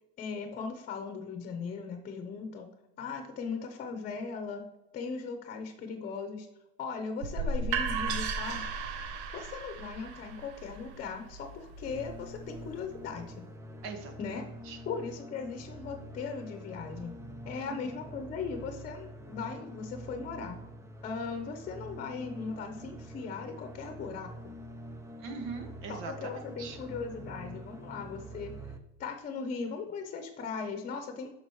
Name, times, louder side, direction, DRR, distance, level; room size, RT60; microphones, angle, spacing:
voice 1, 0.2-2.7 3.0-4.6 4.9-6.5 6.8-8.6 9.3-13.5 14.2-14.4 14.9-17.1 17.5-20.6 21.0-24.5 25.9-28.5 29.0-31.3, left 5 dB, 30° left, 6 dB, 0.9 m, -38 dB
sound 1, 7.2-13.0, right 4 dB, 85° right, 1.0 m, -36 dB
sound 2, 11.8-28.8, right 1 dB, 10° right, 0.5 m, -46 dB
voice 2, 13.8-14.1 14.7-14.8 17.5-17.7 25.2-26.8, right 4 dB, 65° right, 5 dB, 1.8 m, -41 dB
11.5 x 5.3 x 3.1 m, 0.93 s
supercardioid pair, 135°, 33 cm